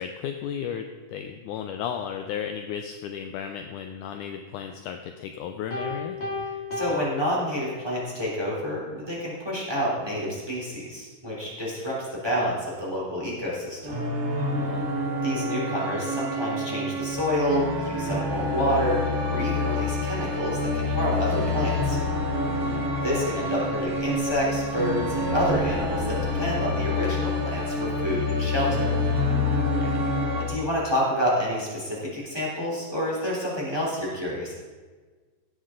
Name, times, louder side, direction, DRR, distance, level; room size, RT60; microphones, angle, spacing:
voice 1, 0.0-6.2 14.6-15.0 22.6-22.9 29.6-30.1, left 8 dB, 75° left, 6 dB, 1.9 m, -34 dB
Piano, 5.7-8.1, left 3 dB, 55° left, 2.8 m, -34 dB
voice 2, 6.7-14.0 15.2-22.0 23.0-28.9 30.5-34.5, equal, 5° right, -5 dB, 3.2 m, -28 dB
sound 1, 13.8-30.5, left 2 dB, 40° right, 1.4 m, -27 dB
16.5 x 8.8 x 3.9 m, 1.4 s
omnidirectional pair, 4.0 m